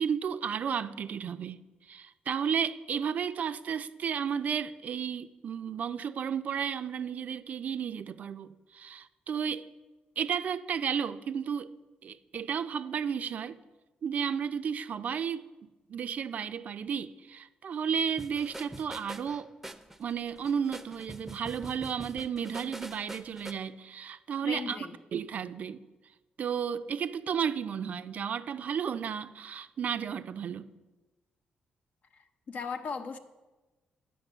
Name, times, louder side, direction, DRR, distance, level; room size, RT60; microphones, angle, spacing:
voice 1, 0.0-1.6 1.9-9.6 10.2-11.7 12.0-13.6 14.0-15.4 15.9-19.5 20.0-24.8 25.1-25.8 26.4-30.7, right 7 dB, 60° right, 11 dB, 0.5 m, -33 dB
sound 1, 18.2-23.5, right 1 dB, 5° right, 0.6 m, -45 dB
voice 2, 24.4-25.0 32.1-33.2, left 5 dB, 60° left, 8 dB, 0.8 m, -38 dB
9.3 x 5.2 x 7.9 m, 1.2 s
cardioid pair, 90°, 3 cm